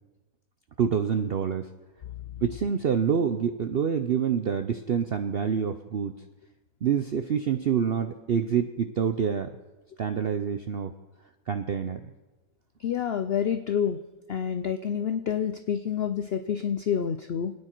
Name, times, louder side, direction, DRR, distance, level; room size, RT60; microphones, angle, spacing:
voice 1, 0.8-1.7 2.4-6.1 6.8-9.5 10.0-10.9 11.5-12.0, right 7 dB, 70° right, 8 dB, 0.5 m, -26 dB
voice 2, 12.8-14.0 14.3-17.5, left 8 dB, 70° left, 9 dB, 0.5 m, -28 dB
28.0 x 9.6 x 4.5 m, 1.2 s
omnidirectional pair, 1.8 m